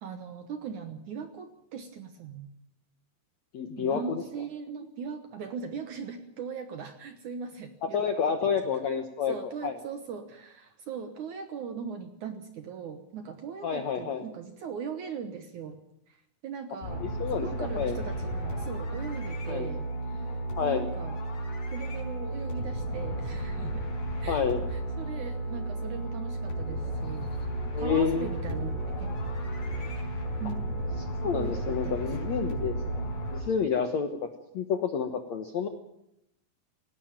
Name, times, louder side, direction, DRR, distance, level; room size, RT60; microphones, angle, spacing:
voice 1, 0.0-2.5 3.8-8.4 9.3-15.8 16.1-17.1 17.3-21.2 21.7-23.9 24.2-27.4 27.8-29.2 30.4-30.6 31.2-32.1, right 6 dB, 65° right, 8 dB, 2.0 m, -39 dB
voice 2, 3.5-4.2 7.8-9.3 9.6-9.8 13.6-14.3 17.0-18.0 19.5-19.7 20.6-20.9 24.3-24.6 27.7-28.3 31.2-32.7 33.3-34.1 34.5-35.7, left 6 dB, 70° left, 7 dB, 1.7 m, -29 dB
sound 1, 16.8-33.4, right 1 dB, 45° left, 5.8 m, -33 dB
18.5 x 18.0 x 8.9 m, 0.79 s
omnidirectional pair, 4.9 m